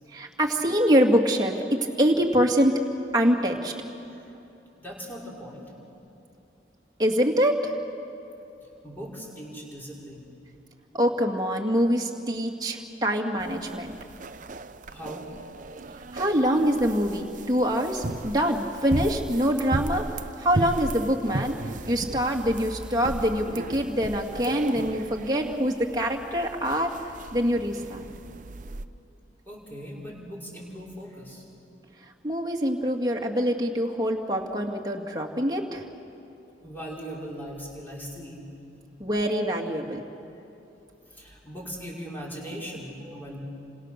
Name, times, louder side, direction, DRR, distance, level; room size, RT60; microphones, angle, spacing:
voice 1, 0.1-1.5 2.0-2.7 3.1-3.7 7.0-7.7 10.9-13.9 16.1-20.1 20.4-21.5 21.9-26.9 27.3-28.1 32.2-35.8 39.0-40.0, equal, 25° right, 0 dB, 2.3 m, -24 dB
voice 2, 4.8-5.7 8.8-10.6 14.9-15.3 29.5-31.4 36.6-38.4 41.1-43.4, equal, 10° left, -4 dB, 5.7 m, -39 dB
sound 1, 13.4-28.8, right 2 dB, 45° right, 0.7 m, -36 dB
30.0 x 26.5 x 6.7 m, 2.8 s
head